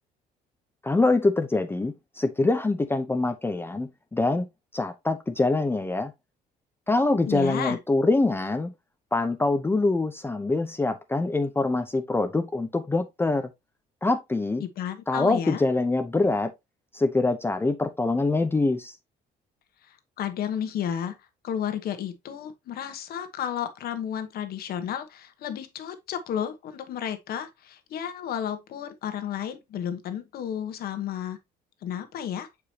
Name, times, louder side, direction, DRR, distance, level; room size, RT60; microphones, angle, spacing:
voice 1, 0.8-4.5 4.7-6.1 6.9-8.7 9.1-13.5 14.0-14.6 15.1-16.5 16.9-18.9, left 2 dB, 15° left, 0.6 m, -24 dB
voice 2, 7.2-7.8 14.6-15.6 19.8-31.4 31.8-32.5, left 9 dB, 65° left, 1.2 m, -32 dB
6.8 x 5.0 x 2.9 m
cardioid pair, 110°, 17 cm